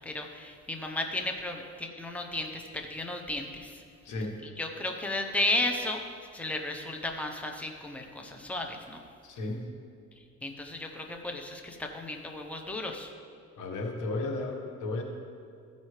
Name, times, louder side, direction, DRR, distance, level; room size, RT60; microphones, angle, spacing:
voice 1, 0.0-3.8 4.4-6.0 6.3-9.0 10.4-13.1, left 2 dB, 5° left, 3 dB, 0.8 m, -34 dB
voice 2, 9.2-9.7 13.6-15.0, left 2 dB, 75° left, 1 dB, 1.5 m, -34 dB
15.0 x 5.4 x 3.3 m, 2.3 s
cardioid pair, 90°, 30 cm